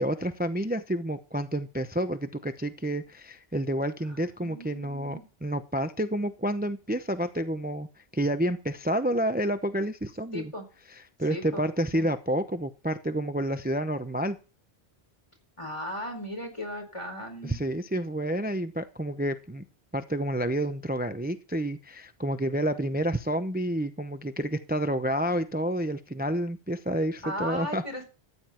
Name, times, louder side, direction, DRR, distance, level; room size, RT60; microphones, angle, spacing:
voice 1, 0.0-10.5 11.2-14.4 17.4-19.6 19.9-27.8, right 1 dB, 10° right, 10 dB, 0.7 m, -29 dB
voice 2, 4.4-5.2 10.3-10.7 11.3-11.7 11.9-12.1 15.6-17.6 27.2-28.0, equal, 30° left, 4 dB, 4.6 m, -37 dB
14.0 x 9.8 x 4.4 m, 0.33 s
omnidirectional pair, 1.1 m